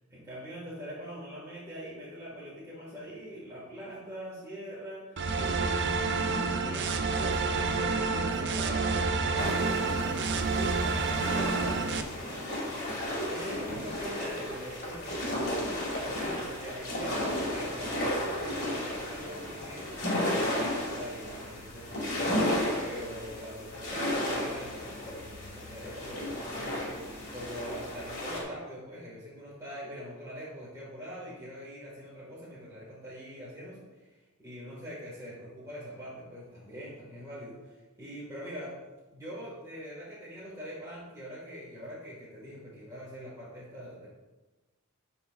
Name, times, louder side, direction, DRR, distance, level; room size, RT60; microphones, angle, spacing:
voice 1, 0.1-12.4 13.1-15.6 15.9-22.5 22.8-38.8 39.1-44.1, equal, 15° right, -9 dB, 1.9 m, -43 dB
sound 1, 5.2-12.0, right 4 dB, 55° right, 0.5 m, -29 dB
sound 2, 9.4-28.4, left 1 dB, 50° left, 2.1 m, -34 dB
12.5 x 4.4 x 2.5 m, 1.2 s
head